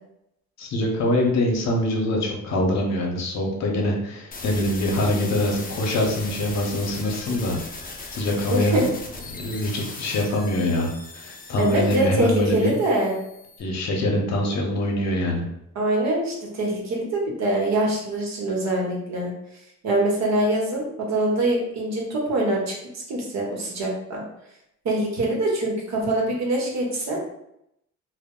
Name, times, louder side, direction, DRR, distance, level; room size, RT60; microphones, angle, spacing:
voice 1, 0.6-7.6 7.8-8.9 9.4-12.7 13.6-15.4, left 1 dB, 65° left, 0 dB, 0.8 m, -24 dB
sound 1, 4.3-13.6, left 3 dB, 30° left, 0.5 m, -39 dB
voice 2, 8.5-8.8 11.6-13.1 15.7-19.3 19.8-24.2 24.8-27.2, right 1 dB, 60° right, -2 dB, 1.0 m, -24 dB
2.2 x 2.0 x 3.6 m, 0.80 s
cardioid pair, 90°, 30 cm